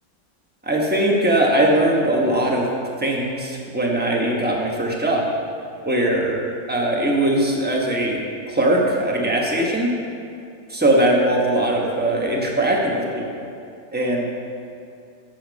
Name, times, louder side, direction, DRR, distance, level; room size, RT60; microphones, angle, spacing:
voice 1, 0.6-2.7 3.0-5.2 5.8-6.4 6.7-8.2 8.5-9.9 10.7-13.2 13.9-14.3, right 1 dB, 10° right, -1 dB, 0.7 m, -20 dB
9.0 x 7.3 x 5.2 m, 2.5 s
omnidirectional pair, 2.0 m